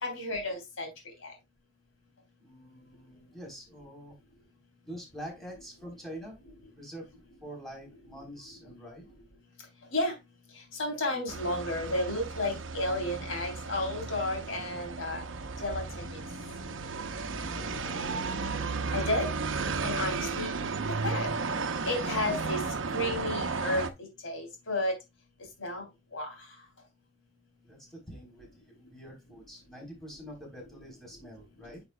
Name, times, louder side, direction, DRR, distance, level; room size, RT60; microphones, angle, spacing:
voice 1, 0.0-0.9 1.2-1.3 9.9-10.1 10.7-15.2 15.6-16.2 18.9-19.3 19.8-20.5 21.0-21.3 21.9-22.6 22.9-24.9 25.6-25.8 26.1-26.3, left 1 dB, 90° left, 3.3 m, -32 dB
voice 2, 2.4-4.2 4.8-6.4 6.8-9.1 17.6-18.3 27.6-31.8, equal, ahead, 3.7 m, -46 dB
sound 1, 11.3-23.9, right 4 dB, 75° right, 0.8 m, -34 dB
9.9 x 5.2 x 2.2 m
head